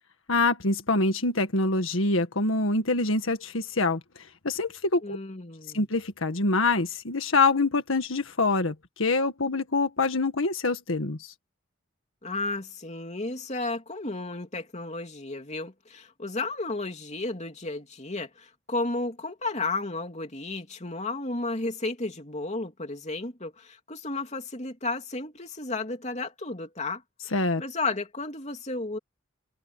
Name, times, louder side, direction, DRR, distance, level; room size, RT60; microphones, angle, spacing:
voice 1, 0.3-4.0 4.4-5.2 5.7-11.3 27.3-27.6, left 3 dB, 85° left, 1.8 m, -25 dB
voice 2, 5.0-5.8 12.2-27.0 27.6-29.0, left 3 dB, 35° left, 3.1 m, -33 dB
head